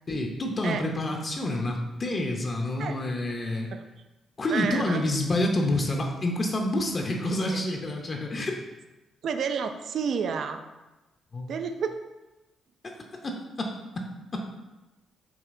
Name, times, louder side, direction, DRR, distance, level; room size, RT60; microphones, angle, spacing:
voice 1, 0.1-3.7 4.4-8.6 11.3-11.5 13.2-13.7 14.0-14.1 14.3-14.4, left 1 dB, 40° left, 2 dB, 0.5 m, -28 dB
voice 2, 4.5-5.0 7.5-7.6 9.2-10.6 11.5-12.0, right 6 dB, 65° right, 8 dB, 0.3 m, -30 dB
4.8 x 2.8 x 2.6 m, 1.1 s
supercardioid pair, 60°, 0 cm